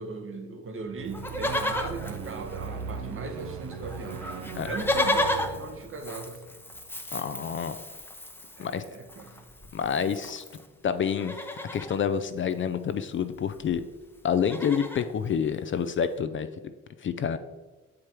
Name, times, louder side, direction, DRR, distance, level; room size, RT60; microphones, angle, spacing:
voice 1, 0.0-4.3 4.7-6.4 8.6-9.5, right 3 dB, 45° right, 5 dB, 1.1 m, -38 dB
sound 1, 0.9-7.2, right 6 dB, 75° right, 0.8 m, -39 dB
Livestock farm animals working animals, 1.1-3.1 3.4-3.5 3.7-10.7 11.1-12.0 13.2-13.3 13.5-13.8 14.1-15.1 15.7-15.8, left 1 dB, 5° left, 0.7 m, -33 dB
voice 2, 7.1-7.8 8.6-8.8 9.7-10.4 10.8-11.4 11.7-13.8 14.2-16.5 17.0-17.4, left 7 dB, 40° left, 11 dB, 0.4 m, -28 dB
7.3 x 4.9 x 4.5 m, 1.3 s
cardioid pair, 90°, 30 cm